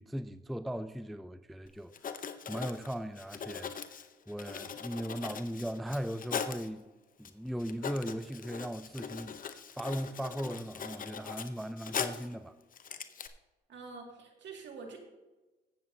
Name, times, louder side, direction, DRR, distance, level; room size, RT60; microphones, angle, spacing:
voice 1, 0.0-1.9 2.5-6.9 7.2-9.4 9.7-12.5, equal, ahead, 0.4 m, -38 dB
Writing, 1.7-1.8 1.9-6.7 7.2-7.3 7.6-12.3 12.7-13.3, left 7 dB, 45° left, 0.8 m, -40 dB
voice 2, 13.7-15.0, right 4 dB, 65° right, 2.3 m, -46 dB
15.0 x 7.4 x 2.8 m
cardioid pair, 90°, 20 cm